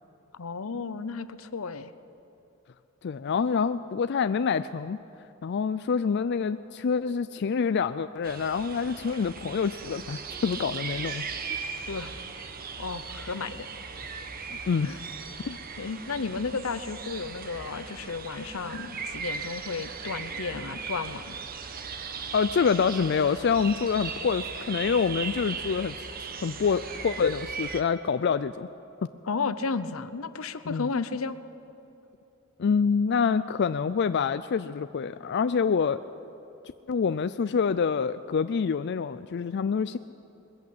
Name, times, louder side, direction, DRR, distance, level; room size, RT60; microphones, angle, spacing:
voice 1, 0.4-1.9 11.9-12.1 12.8-13.7 14.8-15.0 15.8-21.4 29.3-31.4, left 4 dB, 85° left, 13 dB, 0.8 m, -33 dB
voice 2, 3.0-5.0 5.4-11.2 14.5-14.9 15.4-15.6 22.3-26.1 26.4-28.7 30.7-30.9 32.6-36.0 36.9-40.0, left 6 dB, 55° left, 12 dB, 0.4 m, -26 dB
sound 1, 8.2-27.8, right 5 dB, 45° right, 1.2 m, -38 dB
21.0 x 14.5 x 8.6 m, 2.9 s
head